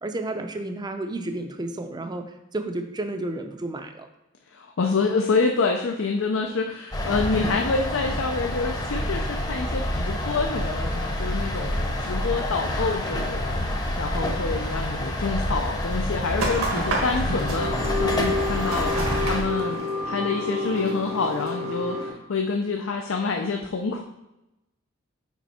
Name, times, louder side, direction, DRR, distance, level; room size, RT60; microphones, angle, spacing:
voice 1, 0.0-4.1, right 2 dB, 20° right, 6 dB, 0.5 m, -31 dB
voice 2, 4.5-13.6 14.0-19.0 19.2-24.0, left 4 dB, 65° left, 3 dB, 0.5 m, -27 dB
sound 1, 6.9-19.4, left 1 dB, 20° left, 0.8 m, -28 dB
sound 2, 16.4-22.1, left 1 dB, 85° right, 1.5 m, -28 dB
6.1 x 5.2 x 4.2 m, 0.94 s
head